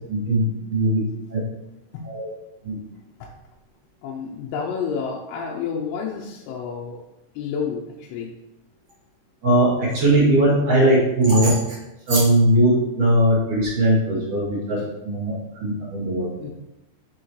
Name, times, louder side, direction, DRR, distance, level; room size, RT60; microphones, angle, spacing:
voice 1, 0.1-1.0 1.3-1.4 2.0-2.3 2.6-2.8 9.4-11.8 12.1-16.3, right 1 dB, 50° right, -6 dB, 2.7 m, -19 dB
voice 2, 4.0-7.0 7.4-8.3 16.4-16.5, left 6 dB, 90° left, -1 dB, 3.4 m, -30 dB
7.4 x 6.4 x 3.0 m, 0.95 s
omnidirectional pair, 5.9 m